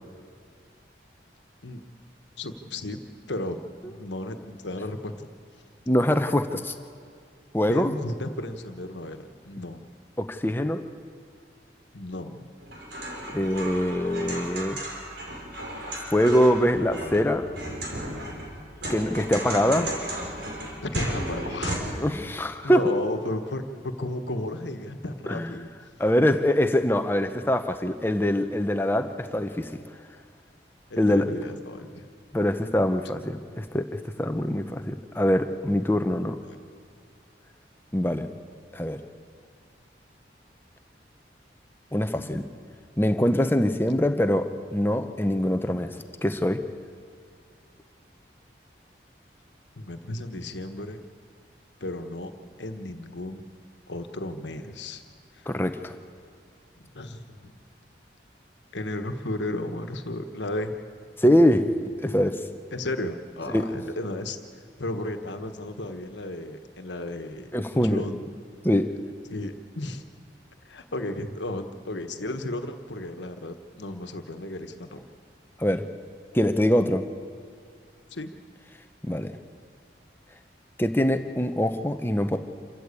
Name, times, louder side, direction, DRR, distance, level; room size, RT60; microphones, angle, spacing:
voice 1, 2.4-3.0 3.3-5.3 7.7-9.8 11.9-12.5 19.4-20.0 20.8-21.9 22.6-25.7 30.9-32.1 36.4-36.6 49.8-51.0 51.8-52.3 52.6-53.5 53.9-55.0 55.3-55.4 56.9-57.5 58.7-60.7 62.7-64.4 64.8-68.3 69.3-70.0 70.6-75.0 78.1-78.3, left 1 dB, 80° left, 7 dB, 1.3 m, -34 dB
voice 2, 5.9-6.7 7.5-7.9 10.2-10.8 13.3-14.8 16.1-17.5 18.9-19.9 21.9-22.9 25.3-25.5 26.0-29.8 31.0-31.3 32.3-36.4 37.9-38.3 38.7-39.0 41.9-42.4 43.0-45.9 46.2-46.6 55.5-55.9 61.2-61.7 62.0-62.4 63.5-63.6 67.5-68.0 68.6-68.9 75.6-75.9 76.3-77.0 79.0-79.4 80.8-82.4, equal, 10° left, 7 dB, 0.8 m, -23 dB
sound 1, 12.6-21.8, right 1 dB, 70° right, 5.1 m, -34 dB
27.5 x 14.0 x 8.4 m, 2.2 s
head